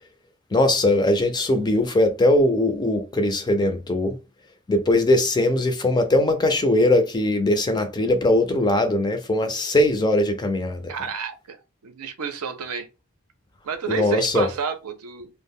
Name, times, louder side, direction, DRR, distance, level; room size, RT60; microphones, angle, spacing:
voice 1, 0.5-4.2 4.7-10.8 13.9-14.5, left 1 dB, 20° left, 0.4 m, -20 dB
voice 2, 10.9-11.6 11.8-12.9 13.6-15.3, right 6 dB, 85° right, 0.6 m, -30 dB
2.1 x 2.0 x 3.5 m
head